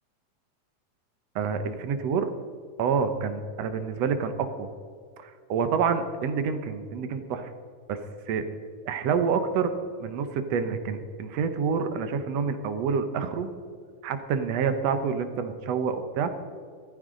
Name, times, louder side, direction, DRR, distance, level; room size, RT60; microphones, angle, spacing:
voice 1, 1.4-2.3 2.8-4.7 5.2-7.5 7.9-8.0 8.3-8.4 8.9-9.7 10.0-13.5 14.0-16.3, right 6 dB, 65° right, 9 dB, 1.9 m, -27 dB
15.0 x 15.0 x 3.8 m, 2.2 s
omnidirectional pair, 3.6 m